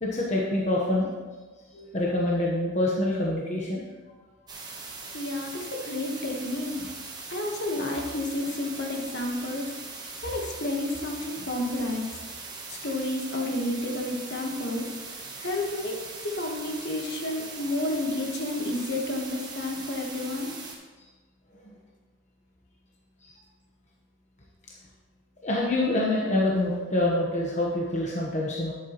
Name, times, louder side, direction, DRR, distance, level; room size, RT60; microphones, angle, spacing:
voice 1, 0.0-1.1 1.7-3.9 21.6-21.7 25.4-28.7, left 1 dB, 35° left, -3 dB, 1.1 m, -26 dB
sound 1, 4.5-20.8, right 3 dB, 20° right, 1.0 m, -40 dB
voice 2, 5.1-6.9 7.3-9.7 10.2-12.0 12.8-20.5, left 1 dB, 50° left, 1 dB, 1.3 m, -31 dB
11.0 x 8.1 x 3.0 m, 1.3 s
head